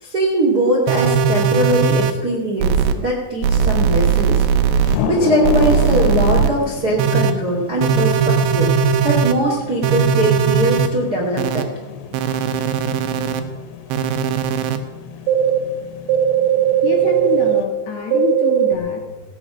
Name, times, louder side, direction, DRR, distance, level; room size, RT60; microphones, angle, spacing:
voice 1, 0.0-4.4 5.1-8.7 9.0-11.7, right 1 dB, 50° right, -3 dB, 1.1 m, -21 dB
sound 1, 0.9-2.1 2.6-2.9 3.4-4.9 5.4-6.5 7.0-7.3 7.8-9.3 9.8-10.9 11.4-11.6 12.1-13.4 13.9-14.8 15.3-15.6 16.1-17.6 18.1-18.8, right 7 dB, 80° right, 2.6 m, -18 dB
sound 2, 4.8-17.6, left 8 dB, 85° left, 3.6 m, -29 dB
voice 2, 16.8-19.2, left 6 dB, 70° left, 2 dB, 2.7 m, -25 dB
17.0 x 8.8 x 6.1 m, 1.3 s
omnidirectional pair, 5.9 m